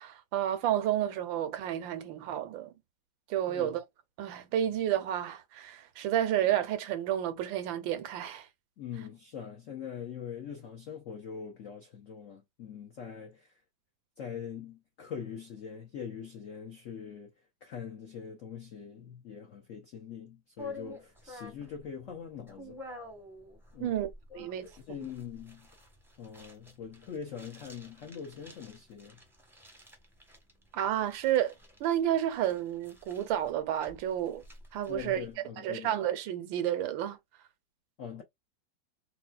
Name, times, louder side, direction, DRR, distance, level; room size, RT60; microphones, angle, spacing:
voice 1, 0.0-2.7 3.3-3.8 4.2-8.5 23.8-24.1 24.3-24.7 25.0-25.1 30.7-31.5 31.8-34.4 34.7-35.2 35.6-37.2, right 11 dB, 75° right, 1.3 m, -31 dB
voice 2, 8.8-13.5 14.2-17.3 17.6-22.8 23.7-24.0 24.3-24.5 24.9-25.7 26.2-29.2 34.9-36.0 38.0-38.2, left 7 dB, 75° left, 0.7 m, -43 dB
sound 1, 20.6-35.3, left 2 dB, ahead, 0.5 m, -50 dB
4.1 x 2.2 x 2.3 m
omnidirectional pair, 2.2 m